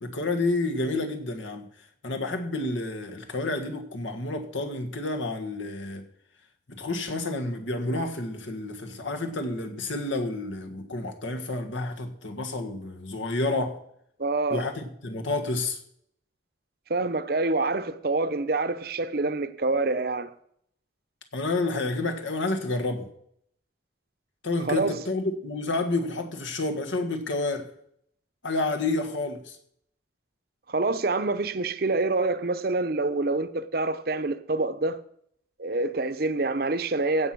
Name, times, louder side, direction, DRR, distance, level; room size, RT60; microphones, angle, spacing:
voice 1, 0.0-1.6 2.0-6.0 6.7-13.8 14.5-15.8 21.3-23.1 24.4-27.7 28.4-29.5, left 2 dB, 85° left, 1.8 m, -29 dB
voice 2, 14.2-14.7 16.9-20.3 24.6-25.0 30.7-35.0 35.6-37.3, right 3 dB, 50° right, 0.7 m, -26 dB
16.5 x 6.0 x 6.1 m
head